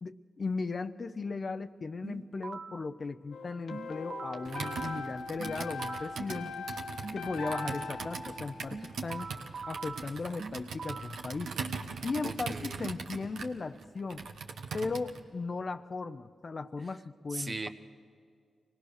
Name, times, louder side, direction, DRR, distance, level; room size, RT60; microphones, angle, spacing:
voice 1, 0.0-6.7 7.1-9.3 9.7-11.6 12.0-14.2 14.7-17.7, left 4 dB, 50° left, 11 dB, 0.7 m, -37 dB
sound 1, 2.0-2.9 3.7-6.2 7.0-7.9 8.7-11.2, right 4 dB, 60° right, 0.7 m, -43 dB
sound 2, 3.3-9.3, left 4 dB, 80° left, 1.5 m, -41 dB
Computer keyboard, 4.4-15.2, right 5 dB, 80° right, 1.2 m, -41 dB
voice 2, 12.2-12.9 17.3-17.7, right 3 dB, 40° right, 8 dB, 1.1 m, -39 dB
24.5 x 18.0 x 6.6 m, 2.3 s
supercardioid pair, 40°, 0 cm